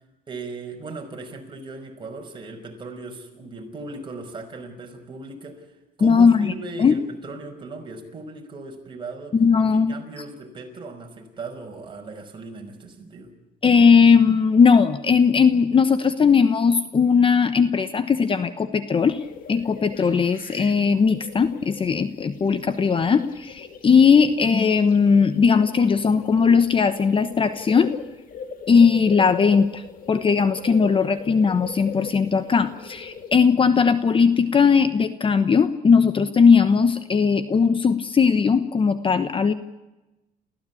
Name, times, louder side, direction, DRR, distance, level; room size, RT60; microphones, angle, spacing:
voice 1, 0.3-5.7 6.0-9.4 9.7-13.3, right 3 dB, 30° right, 2 dB, 5.6 m, -37 dB
voice 2, 6.0-6.5 6.8-6.9 9.3-9.9 13.6-19.2 19.5-27.9 28.7-39.5, left 5 dB, 30° left, 12 dB, 1.1 m, -18 dB
sound 1, 19.0-33.3, left 6 dB, 55° left, 2.3 m, -41 dB
29.0 x 15.5 x 8.6 m, 1.0 s
cardioid pair, 110°, 17 cm